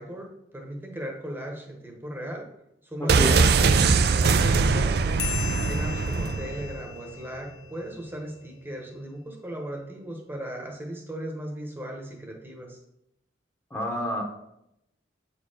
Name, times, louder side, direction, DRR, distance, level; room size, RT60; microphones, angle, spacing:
voice 1, 0.0-2.5 2.8-5.3 5.6-12.8, equal, 10° right, 1 dB, 1.0 m, -37 dB
voice 2, 3.0-3.4 13.7-14.2, equal, 15° left, 0 dB, 1.0 m, -29 dB
sound 1, 3.1-6.9 7.1-7.2, right 4 dB, 60° right, 0.4 m, -21 dB
sound 2, 5.2-8.2, left 11 dB, 65° left, 1.1 m, -38 dB
8.1 x 4.4 x 4.9 m, 0.80 s
head